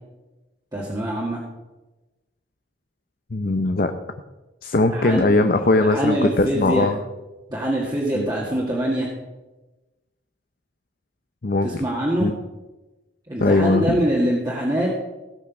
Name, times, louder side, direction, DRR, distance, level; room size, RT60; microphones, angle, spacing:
voice 1, 0.7-1.4 4.9-5.3 5.8-6.9 7.5-9.1 11.6-12.3 13.3-14.9, right 1 dB, 20° right, -4 dB, 1.9 m, -23 dB
voice 2, 3.3-3.9 4.6-7.0 8.1-8.3 11.4-11.7 12.2-12.3 13.4-14.0, left 2 dB, 50° left, 7 dB, 0.7 m, -20 dB
17.0 x 6.2 x 6.1 m, 1.1 s
head